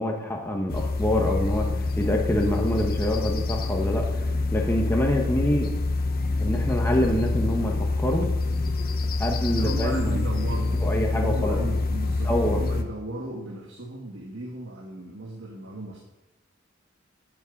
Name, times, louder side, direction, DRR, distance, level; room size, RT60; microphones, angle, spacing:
voice 1, 0.0-1.7 2.0-4.1 4.5-5.7 6.4-8.3 9.2-10.2 10.8-11.6 12.2-12.6, left 1 dB, 10° left, 0 dB, 1.2 m, -26 dB
sound 1, 0.7-12.8, left 3 dB, 50° left, 0.9 m, -26 dB
voice 2, 9.5-16.0, right 1 dB, 65° right, -1 dB, 1.6 m, -36 dB
9.1 x 7.3 x 7.2 m, 1.0 s
head